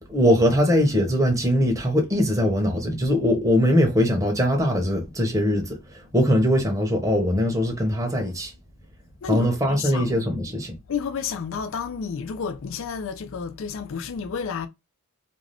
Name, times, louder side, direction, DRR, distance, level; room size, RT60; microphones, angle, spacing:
voice 1, 0.1-8.5 9.3-10.8, equal, 15° right, 0.8 m, -21 dB
voice 2, 9.2-10.1 10.9-14.7, left 6 dB, 60° left, 0.4 m, -31 dB
2.5 x 2.4 x 3.2 m
head